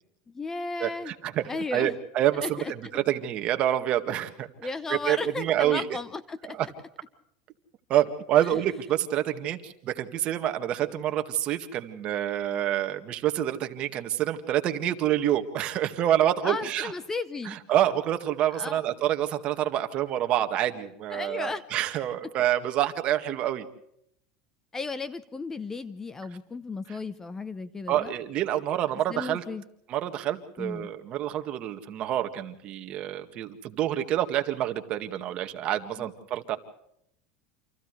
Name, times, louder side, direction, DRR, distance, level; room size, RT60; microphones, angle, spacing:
voice 1, 0.3-1.2 1.5-1.9 2.4-2.7 4.6-6.7 8.4-8.5 16.4-17.6 18.5-18.8 21.1-21.6 24.7-28.1 29.1-29.6 30.6-30.9 36.0-36.1, left 3 dB, 15° left, 14 dB, 0.9 m, -34 dB
voice 2, 0.8-1.4 1.7-2.6 2.9-4.5 4.9-5.9 6.5-6.7 7.9-16.9 17.5-23.7 27.9-29.4 29.9-36.6, right 12 dB, 40° right, 7 dB, 2.0 m, -27 dB
29.5 x 27.0 x 3.3 m, 0.74 s
supercardioid pair, 140°, 3 cm